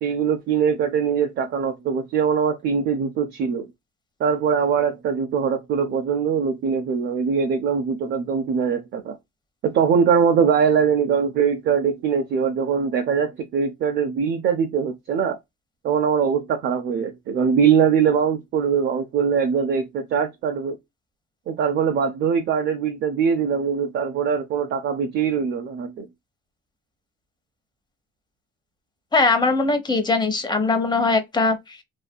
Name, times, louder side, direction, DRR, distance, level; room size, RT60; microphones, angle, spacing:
voice 1, 0.0-3.7 4.2-9.2 9.6-15.4 15.8-20.8 21.5-26.1, right 6 dB, 65° right, 0.5 m, -22 dB
voice 2, 29.1-31.8, left 3 dB, 20° left, 0.7 m, -21 dB
2.6 x 2.5 x 2.2 m
cardioid pair, 90°, 20 cm